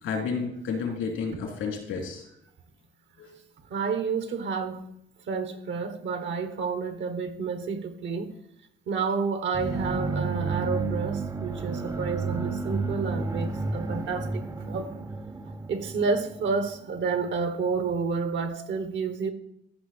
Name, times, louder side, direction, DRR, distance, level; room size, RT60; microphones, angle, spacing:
voice 1, 0.0-2.2 3.2-3.3, left 5 dB, 90° left, 3.1 m, -31 dB
voice 2, 3.7-4.8 5.3-8.3 8.9-14.9 15.7-19.3, right 5 dB, 70° right, 1.3 m, -30 dB
sound 1, 9.5-17.3, right 3 dB, 15° right, 0.6 m, -32 dB
14.0 x 5.9 x 4.3 m
cardioid pair, 90°, 20 cm